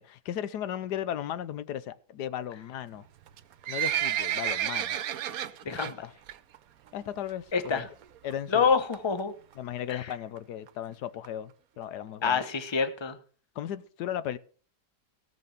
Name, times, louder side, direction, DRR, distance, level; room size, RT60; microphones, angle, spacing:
voice 1, 0.0-3.1 3.7-5.0 6.0-6.1 6.9-7.9 8.2-8.7 9.6-12.4 13.5-14.4, left 10 dB, 90° left, 1.3 m, -36 dB
Livestock farm animals working animals, 3.3-5.9 6.3-6.6 6.9-7.0 7.7-7.8 8.0-8.1 8.3-8.4 8.9-9.2 9.8-9.9 10.1-10.2 10.4-10.5 10.7-10.8 11.2-11.3 11.8-11.9 12.4-12.5, right 11 dB, 65° right, 1.1 m, -31 dB
voice 2, 5.6-6.0 7.5-7.8 8.5-9.3 9.9-10.0 12.2-13.2, left 5 dB, 20° left, 0.9 m, -26 dB
17.0 x 6.8 x 5.8 m
omnidirectional pair, 1.7 m